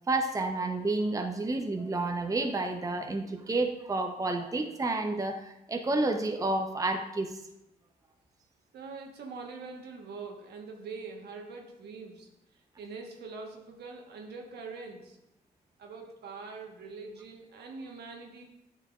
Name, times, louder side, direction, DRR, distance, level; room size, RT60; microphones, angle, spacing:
voice 1, 0.1-7.4, right 2 dB, 20° right, 5 dB, 0.7 m, -30 dB
voice 2, 8.7-12.3 12.8-15.2 15.8-18.4, right 4 dB, 75° right, 1 dB, 1.2 m, -43 dB
9.1 x 5.8 x 2.4 m, 0.87 s
supercardioid pair, 55°, 17 cm